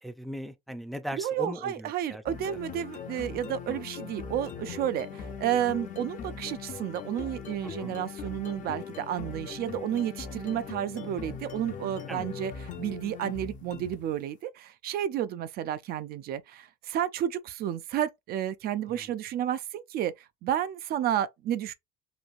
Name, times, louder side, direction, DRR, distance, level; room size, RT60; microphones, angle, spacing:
voice 1, 0.0-2.2 2.5-2.6 7.8-8.0 12.1-12.3 18.9-19.1, equal, ahead, 0.4 m, -38 dB
voice 2, 1.2-12.5 12.8-21.7, right 10 dB, 65° right, 0.4 m, -31 dB
sound 1, 2.3-14.2, left 7 dB, 50° left, 0.6 m, -40 dB
3.1 x 2.6 x 2.4 m
cardioid pair, 110°, 17 cm